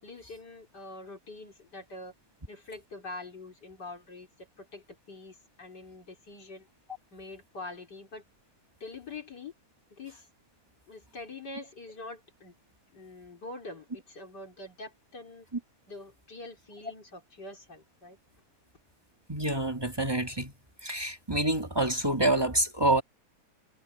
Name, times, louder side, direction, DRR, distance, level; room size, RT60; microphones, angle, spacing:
voice 1, 0.0-2.1 2.5-6.7 7.1-8.2 8.8-9.5 9.9-10.3 10.9-12.5 12.9-15.5 15.9-18.2, left 2 dB, 35° left, 4.6 m, -45 dB
voice 2, 19.3-20.5 20.8-23.0, right 1 dB, 10° right, 1.3 m, -27 dB
omnidirectional pair, 3.4 m